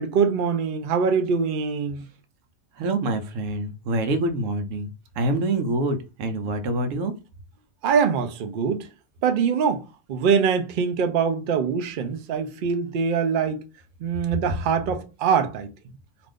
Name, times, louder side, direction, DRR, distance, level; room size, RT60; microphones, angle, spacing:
voice 1, 0.0-2.1 7.8-8.9 9.2-13.6 14.0-15.7, right 6 dB, 65° right, 0.5 m, -23 dB
voice 2, 2.8-4.9 5.2-7.1, right 2 dB, 80° right, 1.0 m, -26 dB
2.5 x 2.5 x 3.4 m
omnidirectional pair, 1.3 m